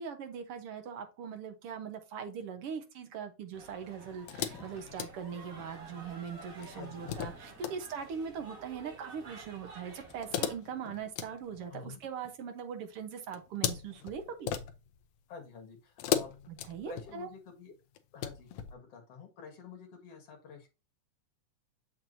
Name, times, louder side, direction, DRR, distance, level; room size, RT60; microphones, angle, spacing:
voice 1, 0.0-14.5 16.5-17.3, right 7 dB, 60° right, 6 dB, 1.7 m, -41 dB
sound 1, 3.5-10.5, right 3 dB, 35° right, 1.5 m, -51 dB
sound 2, 4.3-5.8 6.6-7.8 10.1-12.3 13.3-15.1 16.0-17.3 17.9-18.7, left 10 dB, 75° left, 1.6 m, -37 dB
voice 2, 6.7-7.3 11.7-12.0 15.3-16.3 16.9-17.7 18.1-20.7, left 5 dB, 55° left, 2 dB, 2.8 m, -48 dB
7.3 x 6.0 x 2.7 m, 0.28 s
omnidirectional pair, 3.6 m